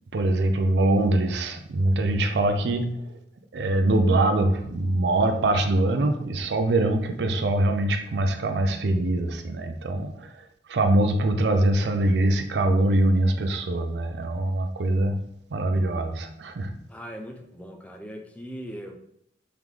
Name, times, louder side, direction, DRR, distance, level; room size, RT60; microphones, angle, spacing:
voice 1, 0.1-3.1 3.5-15.2 15.5-16.7, right 1 dB, 70° right, 7 dB, 0.4 m, -23 dB
voice 2, 16.9-19.0, equal, 10° left, 3 dB, 0.3 m, -39 dB
3.7 x 3.6 x 3.1 m, 0.74 s
head